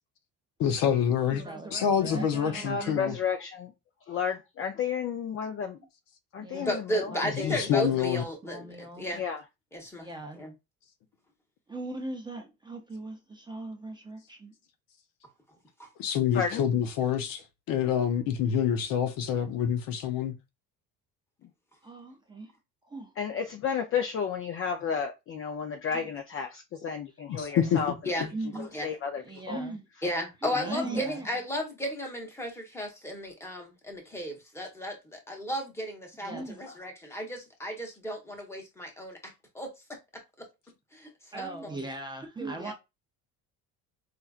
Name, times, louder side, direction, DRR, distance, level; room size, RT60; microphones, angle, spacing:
voice 1, 0.6-1.4 1.7-3.2 7.4-8.2 16.0-20.3 27.3-27.8, left 8 dB, 70° left, 0.8 m, -27 dB
voice 2, 1.3-3.2 6.4-6.7 7.0-9.1 10.0-10.4 11.7-14.5 21.8-22.5 22.8-23.1 25.9-26.1 28.3-28.7 29.2-29.9 30.4-31.3 36.2-36.7 41.3-42.7, right 2 dB, 15° right, 0.5 m, -39 dB
voice 3, 2.6-3.7 4.1-5.8 6.3-7.1 7.4-7.6 9.1-9.4 16.3-16.6 23.2-27.9 28.6-29.6, left 7 dB, 40° left, 0.5 m, -32 dB
voice 4, 6.5-9.2 9.7-10.1 10.4-10.5 15.8-15.9 28.0-28.3 28.7-28.9 30.0-39.2 39.5-39.7 40.9-41.1 41.4-41.5 42.6-42.7, equal, 5° left, 1.0 m, -34 dB
4.3 x 2.5 x 2.4 m
cardioid pair, 135°, 35 cm